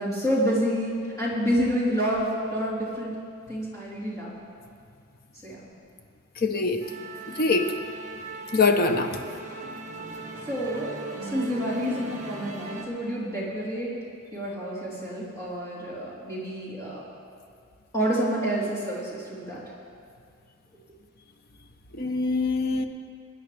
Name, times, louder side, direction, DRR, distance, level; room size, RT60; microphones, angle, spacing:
voice 1, 0.0-3.1 3.5-4.3 5.4-5.6 7.3-7.5 10.5-10.9 11.2-14.0 14.3-17.0 17.9-19.6, equal, 15° left, -9 dB, 3.7 m, -28 dB
voice 2, 6.4-6.8 7.4-7.7 8.5-9.2 22.0-22.8, left 3 dB, 45° left, 6 dB, 0.9 m, -23 dB
Musical instrument, 6.8-12.9, right 3 dB, 40° right, 1.6 m, -38 dB
23.5 x 9.9 x 3.4 m, 2.2 s
head